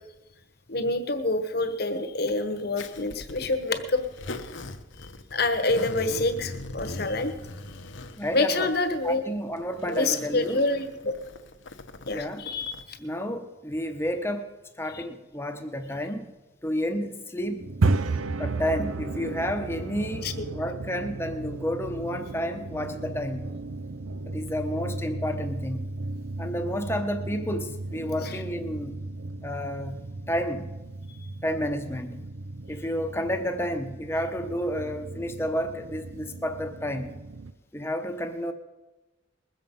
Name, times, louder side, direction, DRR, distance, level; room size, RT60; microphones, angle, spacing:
voice 1, 0.7-4.0 5.3-7.3 8.3-9.2 9.9-11.1 12.1-13.0 14.9-15.0 20.2-20.5 28.2-28.4, left 2 dB, 50° left, 9 dB, 1.2 m, -27 dB
Zipper (clothing), 2.8-12.8, left 2 dB, 65° left, 1.0 m, -41 dB
voice 2, 8.2-8.7 9.0-10.6 12.1-12.4 13.0-14.5 14.8-16.3 16.6-17.7 18.4-23.6 24.3-25.9 26.4-29.0 29.4-30.7 31.4-32.2 32.7-37.2 37.7-38.5, equal, 10° left, 7 dB, 0.9 m, -31 dB
sound 1, 17.6-37.5, right 3 dB, 85° right, 0.6 m, -34 dB
21.0 x 7.8 x 5.4 m, 1.1 s
head